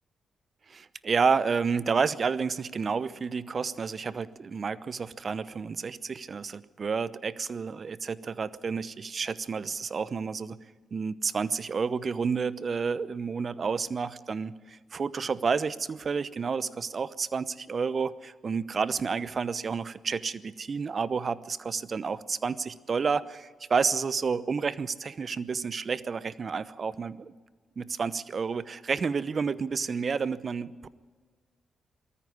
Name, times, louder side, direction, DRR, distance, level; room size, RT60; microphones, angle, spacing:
voice 1, 0.7-10.6 10.9-27.3 27.8-30.9, right 5 dB, 50° right, 17 dB, 0.8 m, -30 dB
19.5 x 14.0 x 9.7 m, 1.5 s
supercardioid pair, 50°, 0 cm